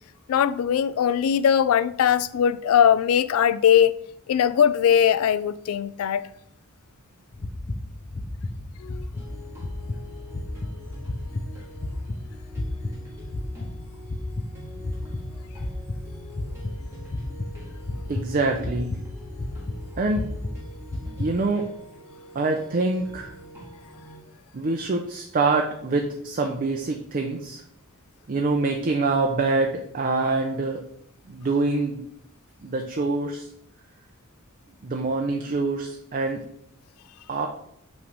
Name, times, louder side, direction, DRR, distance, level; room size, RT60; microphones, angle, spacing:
voice 1, 0.3-3.9 4.3-6.3 8.8-9.1, left 8 dB, 70° left, 0.3 m, -20 dB
sound 1, 7.3-21.3, left 2 dB, 35° left, 0.6 m, -33 dB
sound 2, 9.1-24.2, left 1 dB, 15° right, 1.5 m, -46 dB
voice 2, 18.1-19.0 20.0-20.3 21.2-21.7 22.3-23.3 24.5-27.6 28.3-30.8 31.3-32.0 32.6-33.5 34.8-36.4 37.3-37.5, right 3 dB, 40° right, 0.5 m, -25 dB
5.9 x 3.2 x 5.2 m
head